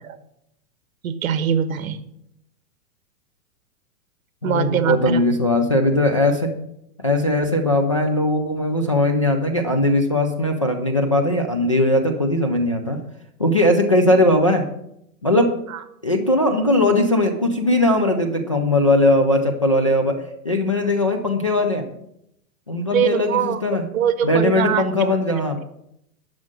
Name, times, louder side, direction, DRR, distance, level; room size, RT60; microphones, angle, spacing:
voice 1, 1.0-2.0 4.4-5.3 15.7-15.8 22.9-24.8, right 8 dB, 70° right, 12 dB, 1.3 m, -22 dB
voice 2, 4.4-6.5 7.0-13.0 13.4-14.7 15.2-15.6 16.0-21.9 22.7-23.8 24.2-25.6, left 1 dB, 25° left, 1 dB, 0.3 m, -19 dB
11.0 x 6.3 x 7.3 m, 0.77 s
supercardioid pair, 175°, 43 cm